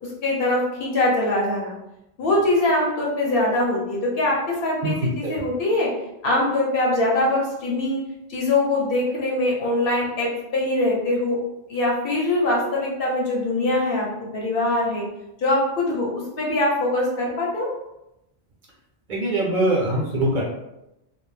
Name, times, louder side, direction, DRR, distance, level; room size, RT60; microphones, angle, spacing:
voice 1, 0.0-1.7 2.2-5.9 6.2-8.0 8.3-11.4 11.7-14.1 14.3-15.0 15.4-16.1 16.4-17.7, left 2 dB, 65° left, -3 dB, 0.9 m, -22 dB
voice 2, 4.8-5.3 19.1-20.4, right 1 dB, 55° right, -4 dB, 0.7 m, -23 dB
2.3 x 2.0 x 3.1 m, 0.89 s
omnidirectional pair, 1.1 m